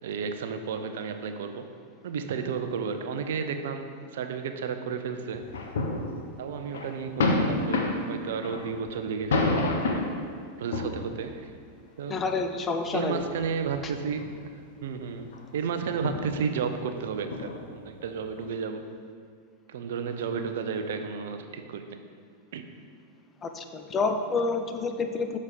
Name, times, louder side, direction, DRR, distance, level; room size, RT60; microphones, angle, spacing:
voice 1, 0.0-1.7 2.0-5.4 6.4-10.0 10.6-11.5 12.0-12.2 12.9-14.5 14.8-18.9 19.7-22.0 22.5-22.6, right 6 dB, 70° right, 7 dB, 0.5 m, -32 dB
sound 1, 5.3-6.4 6.7-10.2 10.7-11.3 12.2-12.3 13.1-14.3 14.7-15.0 15.3-15.4 16.0-18.4, left 2 dB, 75° left, 0.7 m, -29 dB
voice 2, 12.1-13.2 23.4-25.4, left 4 dB, 25° left, 6 dB, 0.6 m, -28 dB
6.2 x 4.2 x 5.0 m, 2.1 s
hypercardioid pair, 95°, 0 cm